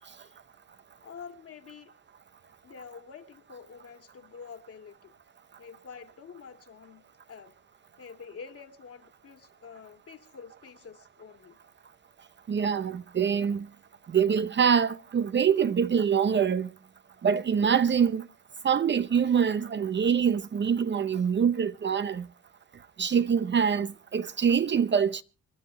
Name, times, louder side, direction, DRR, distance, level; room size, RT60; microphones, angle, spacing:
voice 1, 0.0-0.4 1.0-1.9 2.6-5.1 5.6-7.0 7.3-7.5 8.0-11.6, left 6 dB, 50° left, 2.1 m, -47 dB
voice 2, 12.5-13.7 14.1-16.7 17.2-18.3 18.6-22.3 23.0-25.2, right 7 dB, 35° right, 0.7 m, -25 dB
26.0 x 12.0 x 3.2 m
cardioid pair, 90°, 30 cm